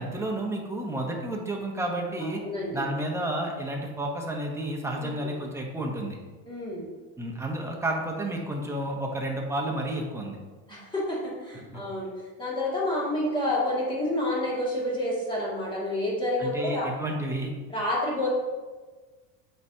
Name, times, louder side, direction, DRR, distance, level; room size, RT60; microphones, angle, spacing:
voice 1, 0.0-2.4 2.7-6.2 7.2-10.4 11.7-11.8 16.4-17.5, right 1 dB, 5° right, 0 dB, 0.8 m, -31 dB
voice 2, 2.4-2.8 5.0-5.3 6.5-6.9 10.7-12.1 12.4-16.9 17.7-18.3, left 1 dB, 10° left, -5 dB, 1.8 m, -29 dB
7.8 x 4.4 x 2.7 m, 1.3 s
supercardioid pair, 135°, 40 cm